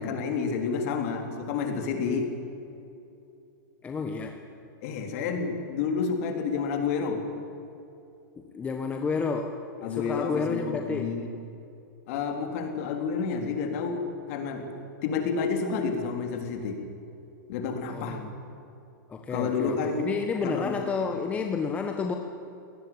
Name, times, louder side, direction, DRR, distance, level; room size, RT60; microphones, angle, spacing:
voice 1, 0.0-2.3 4.8-7.3 9.8-11.3 12.1-14.7 15.0-16.8 17.5-18.2 19.3-20.1 20.4-20.8, left 5 dB, 45° left, 4 dB, 4.0 m, -30 dB
voice 2, 3.8-4.4 8.4-11.2 17.9-18.4 19.1-22.1, left 5 dB, 15° left, 4 dB, 1.2 m, -31 dB
23.5 x 18.5 x 8.9 m, 2.7 s
supercardioid pair, 160°, 11 cm